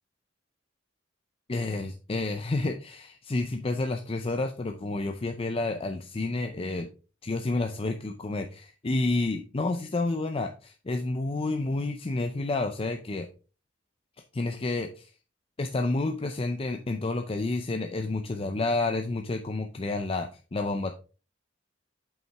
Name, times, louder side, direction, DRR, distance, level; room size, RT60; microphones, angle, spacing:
voice 1, 1.5-6.9 7.2-13.3 14.3-15.1 15.6-21.0, left 2 dB, 30° left, 5 dB, 0.5 m, -30 dB
7.7 x 5.5 x 3.4 m, 0.35 s
head